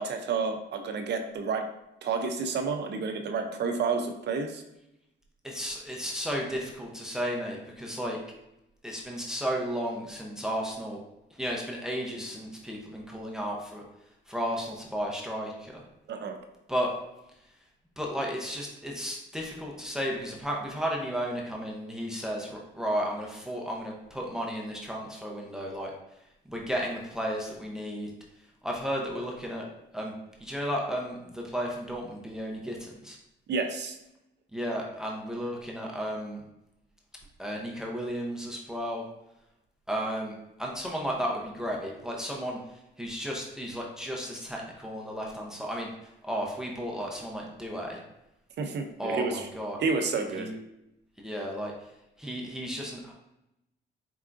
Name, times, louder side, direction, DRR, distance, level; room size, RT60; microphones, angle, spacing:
voice 1, 0.0-1.6 2.0-4.6 16.1-16.4 33.5-34.0 48.6-49.5 49.8-50.5, right 4 dB, 60° right, 6 dB, 0.6 m, -30 dB
voice 2, 5.4-8.2 8.8-11.0 11.3-13.8 14.3-15.8 16.7-16.9 18.0-25.9 26.5-28.1 28.6-29.7 29.9-30.1 30.4-33.2 34.5-36.4 37.4-39.0 39.9-42.6 43.0-45.9 46.2-48.0 49.0-49.8 50.4-50.5 51.2-51.7 52.2-53.1, equal, 5° right, -1 dB, 0.8 m, -33 dB
4.6 x 3.5 x 2.5 m, 0.87 s
cardioid pair, 90°, 20 cm